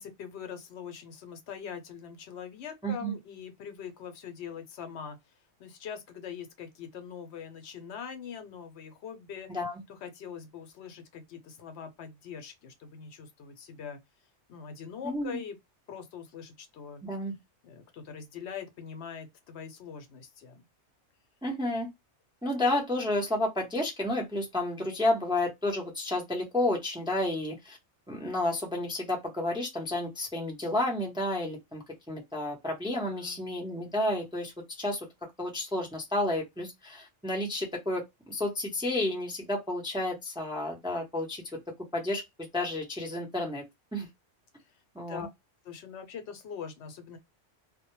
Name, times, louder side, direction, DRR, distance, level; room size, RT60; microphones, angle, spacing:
voice 1, 0.0-5.2 5.6-9.5 9.9-14.0 14.5-15.6 15.9-17.0 17.6-20.6 33.0-33.5 45.1-45.3 45.6-47.2, left 7 dB, 70° left, 0.8 m, -42 dB
voice 2, 2.8-3.1 9.5-9.7 15.0-15.4 17.0-17.3 21.4-21.9 22.4-27.8 28.1-35.1 35.4-41.4 41.9-42.2 42.5-43.6 43.9-44.1 44.9-45.3, left 1 dB, 5° right, 0.5 m, -31 dB
2.1 x 2.1 x 2.9 m
omnidirectional pair, 1.2 m